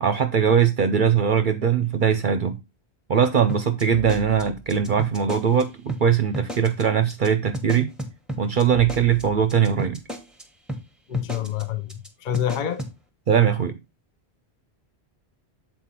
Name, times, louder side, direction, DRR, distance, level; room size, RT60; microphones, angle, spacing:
voice 1, 0.0-2.6 3.1-7.9 8.4-10.0 13.3-13.8, right 7 dB, 55° right, 0.7 m, -21 dB
sound 1, 3.5-5.6 5.9-6.0 6.3-6.8 7.1-7.3 7.5-10.4 10.7-10.8 11.1-11.6 11.9-12.1 12.3-12.9, right 1 dB, ahead, 1.0 m, -33 dB
voice 2, 11.1-11.9 12.2-12.9, left 10 dB, 50° left, 0.9 m, -27 dB
7.6 x 4.3 x 4.1 m
omnidirectional pair, 1.1 m